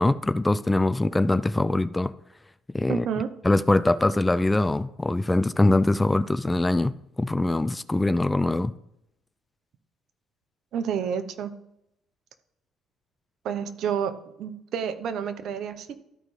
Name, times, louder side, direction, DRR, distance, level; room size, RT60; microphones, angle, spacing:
voice 1, 0.0-2.1 2.7-3.1 3.4-8.7, left 2 dB, 15° left, 0.3 m, -23 dB
voice 2, 2.9-3.3 10.7-11.5 13.4-14.1 14.4-16.0, right 7 dB, 65° right, 0.8 m, -29 dB
13.0 x 5.2 x 3.2 m
supercardioid pair, 80°, 0 cm